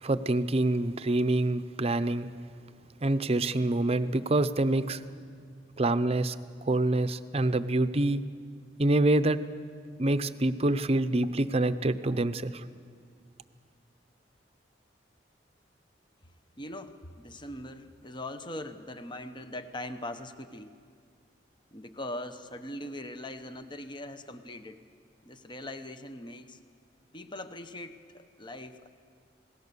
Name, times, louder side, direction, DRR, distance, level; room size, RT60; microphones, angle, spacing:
voice 1, 0.0-2.3 3.0-5.0 5.8-6.3 6.7-8.2 8.8-9.4 10.0-12.5, right 2 dB, 35° right, 12 dB, 0.7 m, -26 dB
voice 2, 16.6-20.7 21.7-24.8 25.2-26.6 27.1-28.9, left 1 dB, 25° left, 9 dB, 1.0 m, -41 dB
27.5 x 18.5 x 6.9 m, 2.1 s
head